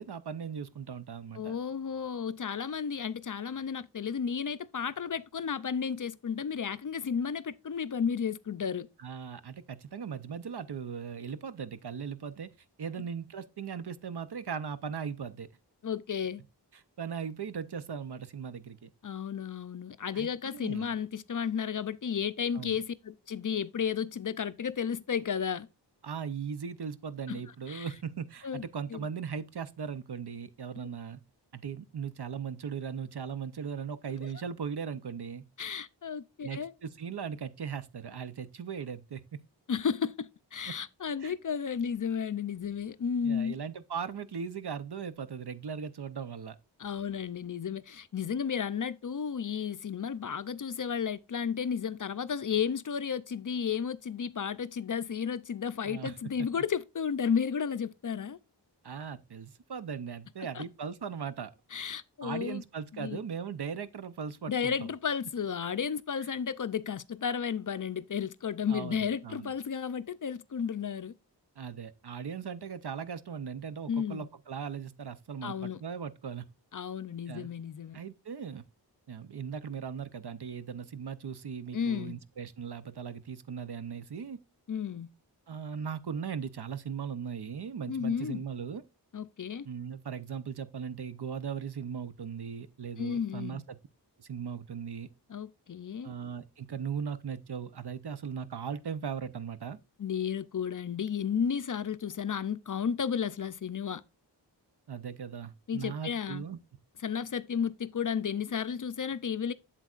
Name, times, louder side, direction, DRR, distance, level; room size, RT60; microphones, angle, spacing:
voice 1, 0.0-1.6 9.0-12.5 12.8-15.5 16.7-18.9 20.1-20.9 22.5-22.8 26.0-31.2 31.5-35.5 36.4-39.4 40.7-40.8 41.2-41.3 43.2-46.6 55.8-56.5 58.8-61.5 62.2-64.9 68.7-69.5 71.6-76.5 77.3-77.5 77.9-78.6 79.1-84.4 85.5-88.8 89.6-93.8 94.2-95.1 96.0-99.8 104.9-106.6, right 7 dB, 65° right, 0.7 m, -38 dB
voice 2, 1.3-8.9 15.8-16.4 19.0-25.7 27.3-27.4 27.7-27.9 28.4-28.6 28.9-29.0 34.2-34.3 35.6-36.7 39.7-43.6 46.8-58.4 60.5-60.6 61.7-62.6 62.9-63.2 64.5-71.1 73.9-74.3 75.4-75.8 76.7-78.0 81.7-82.2 84.7-85.1 87.9-88.4 89.1-89.7 93.0-93.6 95.3-96.1 100.0-104.0 105.7-106.4 107.0-109.5, left 7 dB, 45° left, 0.5 m, -33 dB
7.9 x 7.5 x 2.4 m
wide cardioid pair, 70°, 43 cm